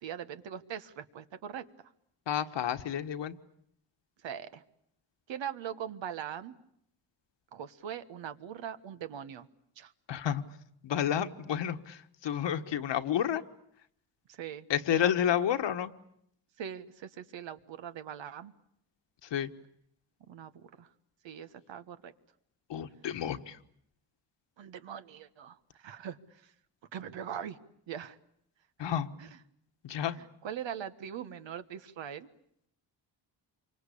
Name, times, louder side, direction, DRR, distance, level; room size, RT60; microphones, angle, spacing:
voice 1, 0.0-1.7 4.2-4.6 5.3-6.5 7.5-9.5 9.8-9.9 14.3-15.1 15.4-15.5 16.6-18.5 20.3-20.9 21.2-22.1 24.6-26.4 26.9-27.6 27.9-28.2 29.2-29.4 30.1-32.3, right 9 dB, 80° right, 11 dB, 1.5 m, -41 dB
voice 2, 2.3-3.3 10.1-10.4 10.8-13.4 14.7-15.9 19.3-19.5 22.7-23.6 28.8-29.1 29.8-30.2, left 9 dB, 75° left, 9 dB, 1.5 m, -30 dB
27.5 x 25.0 x 8.5 m, 0.72 s
cardioid pair, 90°, 44 cm